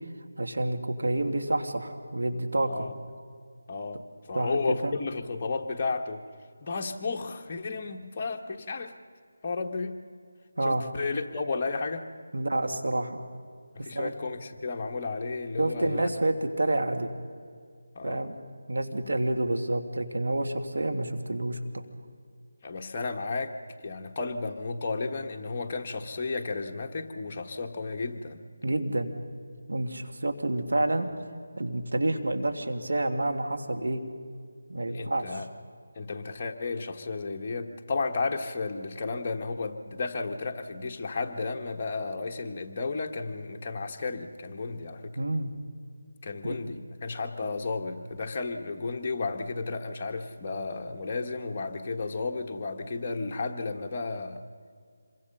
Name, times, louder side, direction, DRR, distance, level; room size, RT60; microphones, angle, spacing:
voice 1, 0.4-2.9 4.3-4.9 10.6-10.8 12.3-13.2 13.8-14.1 15.6-17.1 18.0-18.3 18.7-21.8 28.6-29.1 29.7-31.1 31.6-34.0 34.7-35.5 45.2-45.5 46.4-46.6, right 1 dB, 80° right, 6 dB, 2.6 m, -29 dB
voice 2, 3.7-6.2 6.6-8.9 9.4-10.0 10.6-12.0 13.7-16.1 17.9-18.3 22.6-23.5 23.8-28.4 34.9-35.5 35.9-45.1 46.2-54.4, left 3 dB, 30° left, 3 dB, 1.4 m, -33 dB
27.0 x 23.5 x 5.6 m, 2.1 s
figure-of-eight pair, 170°, 0 cm